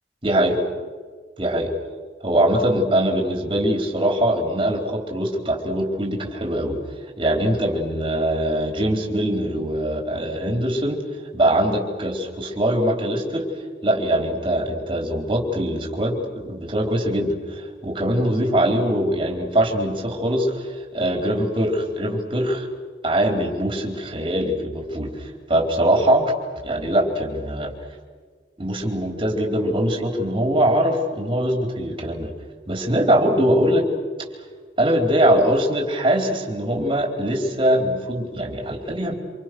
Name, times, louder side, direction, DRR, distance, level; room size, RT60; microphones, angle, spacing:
voice 1, 0.2-0.6 1.4-1.7 2.2-6.8 7.2-11.0 11.3-13.4 13.8-22.7 23.0-26.3 26.6-27.7 28.6-32.3 32.7-33.9 34.8-39.2, right 1 dB, 25° right, 2 dB, 4.3 m, -22 dB
27.5 x 27.0 x 6.4 m, 1.5 s
head